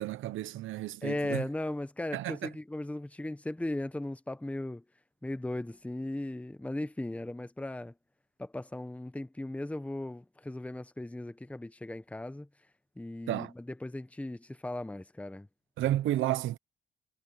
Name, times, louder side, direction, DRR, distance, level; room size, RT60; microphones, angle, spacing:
voice 1, 0.0-1.4 2.1-2.4 13.3-13.5 15.8-16.6, right 13 dB, 85° right, 1.0 m, -31 dB
voice 2, 1.0-4.8 5.2-7.9 8.4-12.5 13.0-15.5, left 1 dB, 5° left, 1.0 m, -37 dB
cardioid pair, 90°, 20 cm